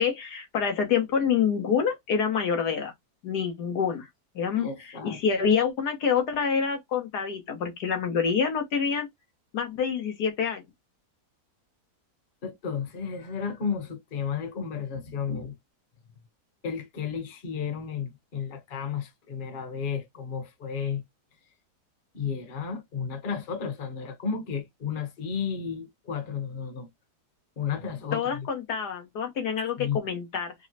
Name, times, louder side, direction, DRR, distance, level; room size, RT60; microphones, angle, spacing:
voice 1, 0.0-2.9 3.2-4.1 4.3-9.1 9.5-10.6 28.1-30.5, left 6 dB, 75° left, 1.6 m, -27 dB
voice 2, 4.6-5.2 12.4-15.6 16.6-21.0 22.1-26.9 27.6-28.5 29.8-30.0, left 6 dB, 35° left, 1.0 m, -33 dB
5.3 x 2.1 x 2.7 m
omnidirectional pair, 1.8 m